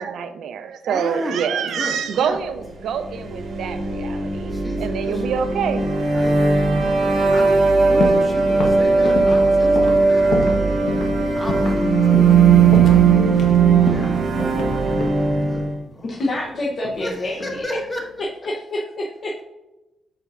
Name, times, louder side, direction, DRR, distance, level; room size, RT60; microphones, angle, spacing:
voice 1, 0.0-5.8, right 7 dB, 65° right, 9 dB, 0.5 m, -26 dB
voice 2, 0.9-1.4 1.7-2.5 4.5-5.2 5.6-5.7 6.1-6.7 7.1-10.4 11.3-12.0 12.3-15.0 15.5-16.2 17.0-18.0, equal, 15° left, -1 dB, 1.3 m, -34 dB
sound 1, 2.8-15.8, right 4 dB, 50° right, 1.0 m, -18 dB
sound 2, 8.0-8.3 8.6-10.6 10.9-11.1 11.5-11.8 12.1-12.4 12.7-13.6 13.9-15.2 16.2-17.1 17.4-17.8, left 2 dB, 65° left, 1.1 m, -27 dB
voice 3, 16.0-17.6 18.4-19.4, left 1 dB, 40° left, -4 dB, 0.8 m, -27 dB
8.2 x 5.6 x 2.5 m, 1.0 s
cardioid pair, 160°, 0 cm